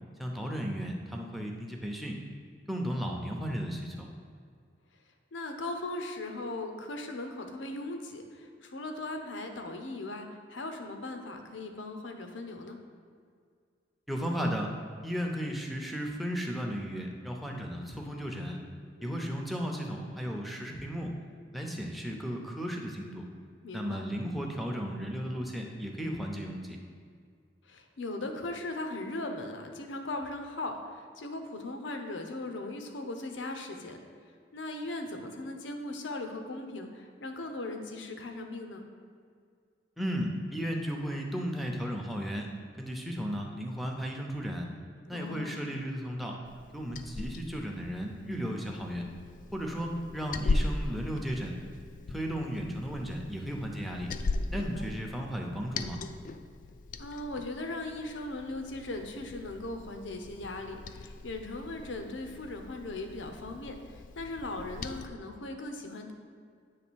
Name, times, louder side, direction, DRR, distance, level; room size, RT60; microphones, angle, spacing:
voice 1, 0.2-2.2 2.7-4.1 14.1-14.7 15.0-18.6 19.0-21.1 21.5-23.2 23.7-26.8 40.0-42.5 42.8-44.7 45.1-46.4 46.7-49.0 49.5-51.5 52.1-54.1 54.5-56.0, equal, ahead, 1 dB, 0.7 m, -35 dB
voice 2, 5.3-12.8 19.0-19.3 23.6-24.1 27.7-34.0 34.5-38.9 45.1-45.6 54.5-54.8 57.0-66.1, left 2 dB, 90° left, 5 dB, 0.8 m, -38 dB
Liquid, 46.5-65.1, left 3 dB, 45° left, 0.3 m, -39 dB
8.3 x 3.3 x 6.2 m, 2.1 s
head